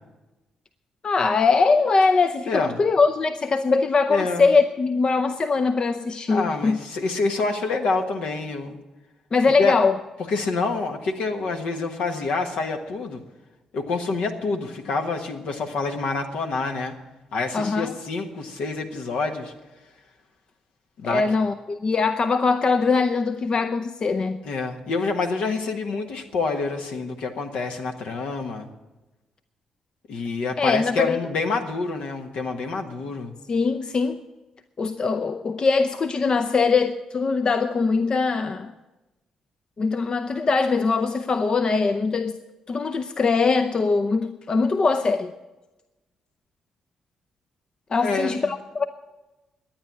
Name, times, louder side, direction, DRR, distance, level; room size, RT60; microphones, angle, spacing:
voice 1, 1.0-6.8 9.3-9.9 17.5-17.9 21.1-24.4 30.6-31.2 33.5-34.2 34.8-38.7 39.8-42.4 42.7-45.3 47.9-48.8, left 4 dB, 45° left, 9 dB, 0.6 m, -22 dB
voice 2, 2.5-2.8 4.1-4.5 6.3-8.8 9.6-9.8 10.3-13.2 13.7-16.9 17.3-19.5 21.0-21.2 24.4-28.7 30.1-33.3 48.0-48.5, left 3 dB, 70° left, 4 dB, 1.4 m, -27 dB
12.0 x 9.2 x 8.5 m, 1.1 s
hypercardioid pair, 50°, 2 cm